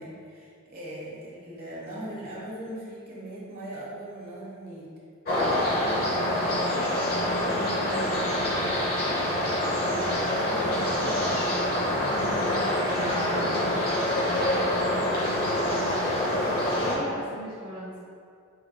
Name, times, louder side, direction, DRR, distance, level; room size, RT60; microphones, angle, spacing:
voice 1, 0.0-4.9 9.8-11.5, right 1 dB, 45° right, -6 dB, 1.2 m, -39 dB
sound 1, 5.2-16.9, left 1 dB, 45° left, 0.9 m, -26 dB
voice 2, 5.8-8.2 8.6-9.0 12.1-13.8 14.3-15.0 16.7-18.0, equal, 25° right, -9 dB, 0.7 m, -39 dB
5.1 x 4.5 x 2.3 m, 2.3 s
head